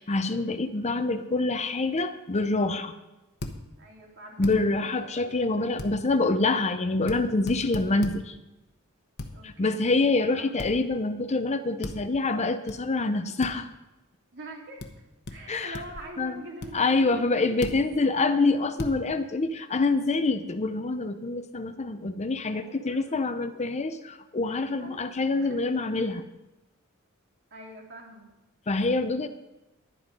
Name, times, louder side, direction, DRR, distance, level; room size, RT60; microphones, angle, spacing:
voice 1, 0.0-2.9 4.4-8.4 9.4-13.7 15.5-15.8 16.2-16.4 16.7-26.2 28.7-29.3, left 3 dB, 30° left, 9 dB, 0.6 m, -26 dB
voice 2, 0.6-1.0 3.8-5.7 9.3-10.0 10.4-10.6 14.3-14.8 15.3-17.6 18.0-18.2 22.4-23.6 24.5-25.0 25.3-25.6 26.0-26.2 27.5-28.3, right 1 dB, 55° right, -1 dB, 2.9 m, -45 dB
sound 1, 3.4-3.6 4.4-4.6 5.8-5.9 7.1-7.2 7.5-8.2 9.2-9.3 10.6-10.8 11.8-12.0 12.7-12.8 13.4-13.5 14.8-14.9 15.3-15.4 15.7-16.1 16.6-16.7 17.6-17.8 18.8-19.0, left 2 dB, 50° left, 1.1 m, -35 dB
11.0 x 11.0 x 5.3 m, 1.0 s
head